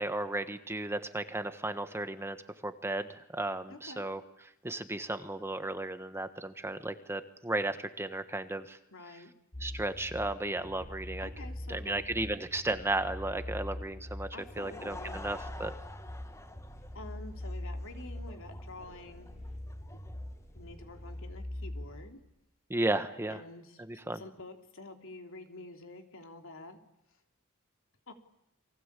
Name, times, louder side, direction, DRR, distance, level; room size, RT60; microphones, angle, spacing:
voice 1, 0.0-2.4 2.6-4.2 4.6-8.8 9.6-11.3 11.7-14.3 14.6-15.7 22.7-23.4 23.9-24.2, right 2 dB, 10° right, 9 dB, 1.3 m, -34 dB
voice 2, 3.7-4.1 8.9-9.3 11.2-12.1 14.3-15.2 16.9-19.3 19.9-20.0 20.5-22.2 23.3-26.8 28.1-28.2, left 2 dB, 65° left, 5 dB, 3.4 m, -48 dB
sound 1, 9.5-22.1, left 1 dB, 30° left, 4.6 m, -43 dB
Laughter / Crowd, 14.2-21.2, left 2 dB, 15° left, 1.5 m, -50 dB
29.5 x 23.5 x 8.4 m, 0.84 s
head